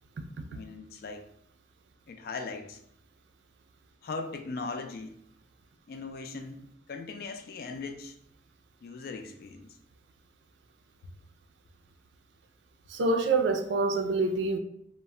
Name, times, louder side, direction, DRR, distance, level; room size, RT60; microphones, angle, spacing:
voice 1, 0.5-1.3 2.1-2.8 4.0-5.1 5.9-8.2 8.8-9.8, left 4 dB, 55° left, 6 dB, 0.3 m, -39 dB
voice 2, 12.9-14.6, right 3 dB, 80° right, 6 dB, 0.4 m, -26 dB
2.1 x 2.0 x 3.6 m, 0.72 s
head